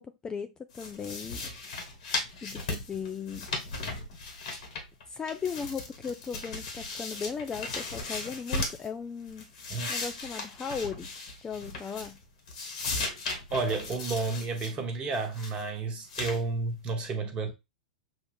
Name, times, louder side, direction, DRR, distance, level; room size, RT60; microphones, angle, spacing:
voice 1, 0.0-1.4 2.4-3.5 5.1-9.5 9.9-11.1 11.4-12.2, left 6 dB, 15° left, 0.4 m, -37 dB
sound 1, 0.7-5.0 5.3-8.9 9.3-12.2 12.5-14.7 15.1-15.6 16.1-16.4, left 3 dB, 60° left, 1.6 m, -37 dB
voice 2, 13.5-17.5, right 3 dB, 25° right, 1.2 m, -31 dB
6.4 x 2.4 x 3.4 m
figure-of-eight pair, 100°, 4 cm